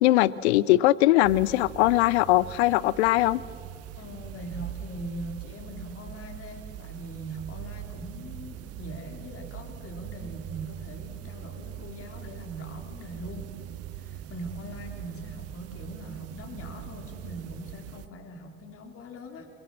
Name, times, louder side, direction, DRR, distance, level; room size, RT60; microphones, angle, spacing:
voice 1, 0.0-3.4, left 16 dB, 60° left, 20 dB, 0.6 m, -21 dB
sound 1, 1.2-18.1, right 11 dB, 40° right, 1.0 m, -41 dB
voice 2, 4.0-13.6 13.9-19.5, equal, 35° left, 3 dB, 3.6 m, -41 dB
28.5 x 22.5 x 7.3 m, 2.1 s
figure-of-eight pair, 70°, 37 cm